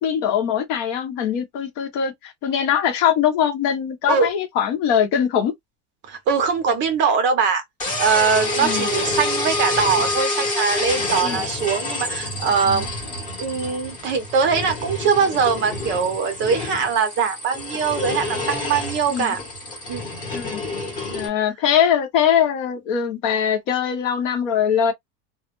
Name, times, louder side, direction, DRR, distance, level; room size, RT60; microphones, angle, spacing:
voice 1, 0.0-5.5 8.6-8.9 11.2-11.4 12.6-12.8 19.1-19.4 20.3-20.6 21.1-24.9, left 8 dB, 50° left, 0.7 m, -22 dB
voice 2, 6.1-7.6 8.0-13.0 13.4-19.4 19.9-20.0 21.1-21.2, right 6 dB, 30° right, 0.5 m, -22 dB
sound 1, 7.8-21.3, left 2 dB, 20° left, 0.8 m, -27 dB
2.2 x 2.0 x 2.9 m
cardioid pair, 180°, 37 cm